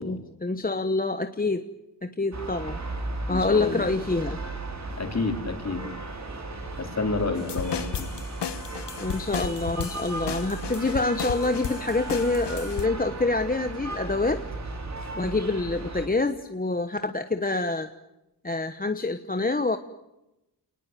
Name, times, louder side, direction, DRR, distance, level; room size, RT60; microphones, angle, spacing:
voice 1, 0.0-1.6 2.0-2.8 3.3-4.4 9.0-14.4 15.2-17.9 18.4-19.8, left 3 dB, 20° left, 8 dB, 1.1 m, -26 dB
sound 1, 2.3-16.1, right 2 dB, 40° right, 3.9 m, -36 dB
voice 2, 3.3-3.8 4.9-5.9 6.8-8.1, left 3 dB, 40° left, 4 dB, 4.4 m, -29 dB
sound 2, 7.4-12.9, left 8 dB, 80° left, 1.4 m, -34 dB
29.5 x 19.5 x 9.2 m, 0.95 s
wide cardioid pair, 155°, 41 cm